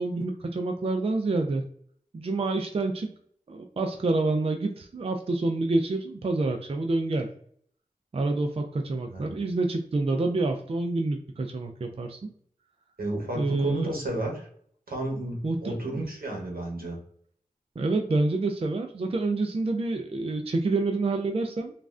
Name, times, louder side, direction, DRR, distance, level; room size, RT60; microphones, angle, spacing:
voice 1, 0.0-1.6 2.1-3.1 3.5-7.3 8.1-12.3 13.4-13.9 15.4-16.0 17.8-21.7, right 2 dB, 40° right, 3 dB, 0.4 m, -27 dB
voice 2, 9.1-9.4 13.0-14.5 14.9-17.0, right 2 dB, 80° right, -1 dB, 0.9 m, -32 dB
3.1 x 2.4 x 2.4 m, 0.62 s
wide cardioid pair, 45°, 15 cm